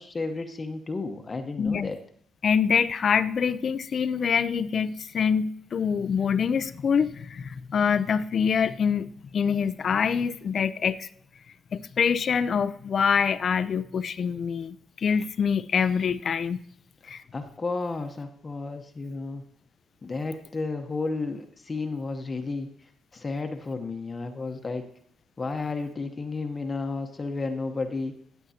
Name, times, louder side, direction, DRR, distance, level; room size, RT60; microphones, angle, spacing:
voice 1, 0.0-2.0 17.0-19.4 20.0-22.7 23.1-24.8 25.4-28.1, left 3 dB, 30° left, 6 dB, 0.9 m, -32 dB
voice 2, 1.6-1.9 2.4-11.1 11.7-16.6 17.1-17.2, left 6 dB, 50° left, 15 dB, 0.5 m, -25 dB
14.0 x 8.0 x 2.8 m, 0.64 s
cardioid pair, 90°, 0 cm